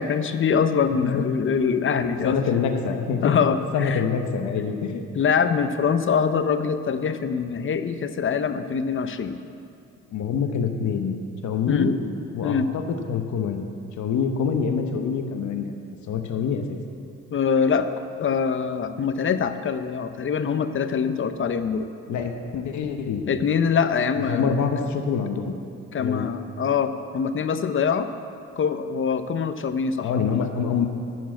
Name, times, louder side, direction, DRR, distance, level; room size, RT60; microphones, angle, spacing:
voice 1, 0.0-2.4 3.2-4.0 5.1-9.4 11.7-11.9 12.4-12.7 17.3-17.9 18.2-21.9 23.3-24.6 25.9-28.1 28.6-30.4, left 6 dB, 40° left, 10 dB, 0.7 m, -24 dB
voice 2, 0.9-1.3 2.2-3.4 3.7-5.0 10.1-11.1 11.4-11.9 12.3-13.6 14.0-15.6 16.1-16.8 22.1-23.3 24.3-25.5 26.0-26.2 30.0-30.9, left 6 dB, 70° left, 5 dB, 1.0 m, -25 dB
12.0 x 4.6 x 8.4 m, 2.4 s
cardioid pair, 90°, 30 cm